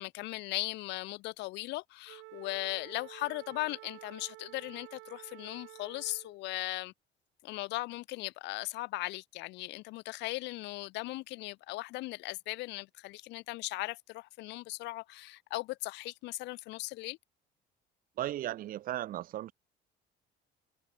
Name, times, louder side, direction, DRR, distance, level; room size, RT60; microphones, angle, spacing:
voice 1, 0.0-6.9 7.4-17.2, left 20 dB, 65° left, 0.4 m, -38 dB
Wind instrument woodwind instrument, 2.1-6.4, right 23 dB, 90° right, 2.0 m, -51 dB
voice 2, 18.2-19.5, right 13 dB, 45° right, 0.7 m, -36 dB
cardioid pair, 150°, 19 cm